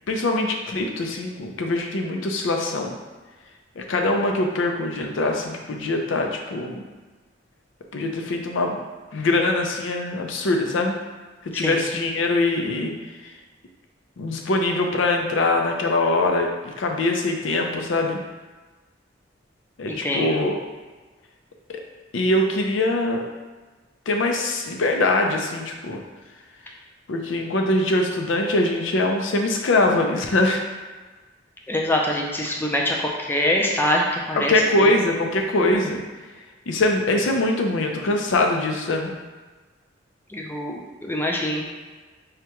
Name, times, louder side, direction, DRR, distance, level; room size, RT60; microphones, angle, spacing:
voice 1, 0.1-2.9 3.8-6.8 7.9-8.8 9.1-11.0 11.4-12.9 13.2-13.3 14.2-18.2 19.8-20.6 21.7-21.8 22.1-23.2 24.1-26.0 27.1-30.6 34.4-36.0 36.7-39.1, left 2 dB, 90° left, 2 dB, 0.5 m, -23 dB
voice 2, 19.9-20.4 31.7-34.5 34.8-34.9 40.3-41.7, left 1 dB, 10° left, -1 dB, 0.4 m, -24 dB
4.9 x 2.2 x 2.9 m, 1.3 s
head